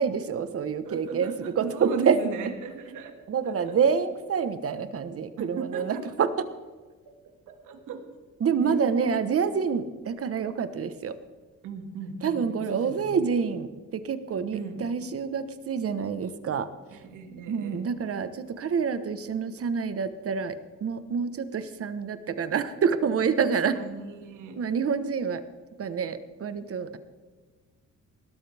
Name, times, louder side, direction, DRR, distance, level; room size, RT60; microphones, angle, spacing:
voice 1, 0.0-2.2 3.3-6.3 8.4-11.1 12.2-13.7 13.9-16.7 17.5-20.6 20.8-23.7 24.6-25.4 25.8-27.0, right 6 dB, 50° right, 11 dB, 1.3 m, -27 dB
voice 2, 0.8-3.8 5.4-6.3 7.1-7.2 7.5-8.0 8.6-9.2 11.6-13.2 14.5-14.9 16.9-17.8 23.4-24.6, right 6 dB, 85° right, 5 dB, 2.1 m, -37 dB
19.0 x 12.5 x 3.5 m, 1.4 s
cardioid pair, 90°, 30 cm